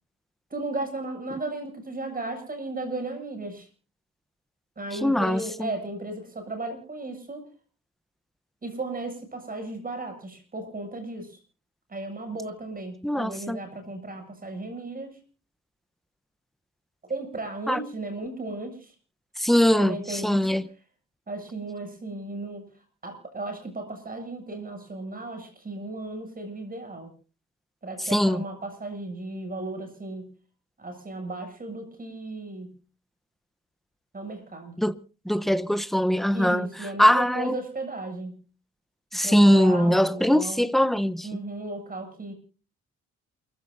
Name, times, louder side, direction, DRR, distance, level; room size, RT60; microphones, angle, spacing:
voice 1, 0.5-3.7 4.8-7.4 8.6-11.4 11.9-15.2 17.0-18.9 19.8-20.6 21.3-22.7 23.0-27.1 27.8-30.3 30.8-32.7 34.1-34.7 36.3-38.4 39.2-40.7 41.2-42.3, right 2 dB, 30° right, 7.5 m, -35 dB
voice 2, 5.0-5.7 13.0-13.6 17.7-17.8 19.4-20.6 28.1-28.4 34.8-35.0 35.2-36.7 37.0-37.5 39.1-41.4, equal, ahead, 0.9 m, -21 dB
28.5 x 15.5 x 2.7 m
cardioid pair, 90°, 30 cm